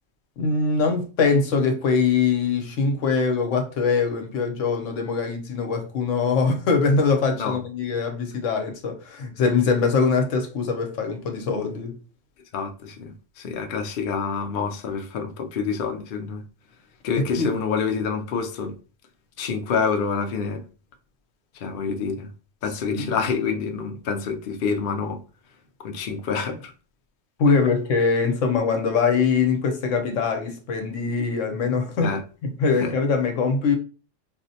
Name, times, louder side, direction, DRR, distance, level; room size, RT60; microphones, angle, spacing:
voice 1, 0.4-12.0 17.2-17.5 22.9-23.1 27.4-32.1 32.4-33.8, left 4 dB, 80° left, 1.1 m, -22 dB
voice 2, 12.5-16.4 17.0-18.8 19.4-20.6 21.5-22.3 22.6-25.2 25.8-26.7 32.0-32.2 32.8-32.9, left 5 dB, 60° left, 0.6 m, -27 dB
4.3 x 2.0 x 2.7 m
omnidirectional pair, 1.3 m